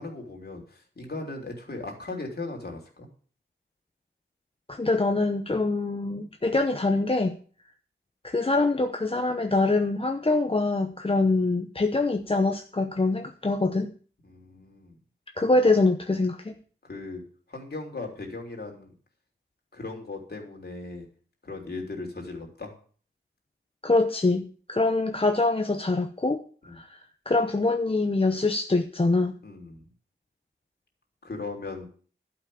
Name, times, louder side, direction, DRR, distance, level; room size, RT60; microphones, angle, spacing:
voice 1, 0.0-3.1 14.2-15.0 16.8-18.9 19.7-21.1 21.4-22.7 26.7-26.8 29.4-29.9 31.2-31.9, left 3 dB, 50° left, 1 dB, 3.5 m, -38 dB
voice 2, 4.7-7.4 8.2-13.9 15.4-16.5 23.8-26.4 26.8-27.0 27.3-29.3, left 2 dB, 25° left, 5 dB, 0.8 m, -24 dB
11.5 x 5.9 x 8.6 m, 0.44 s
wide cardioid pair, 90°, 21 cm